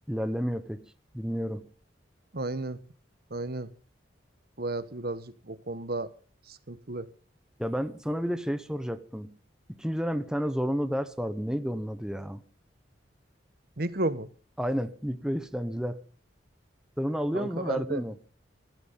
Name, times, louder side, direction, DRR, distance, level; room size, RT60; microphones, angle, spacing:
voice 1, 0.1-0.9 1.1-1.7 7.6-9.3 9.8-12.4 14.6-16.0 17.0-18.2, equal, 5° right, 0.9 m, -31 dB
voice 2, 2.3-2.8 3.3-3.7 4.6-6.1 6.7-7.1 13.8-14.3 17.3-18.0, right 2 dB, 55° right, 1.2 m, -32 dB
18.0 x 14.0 x 5.4 m
head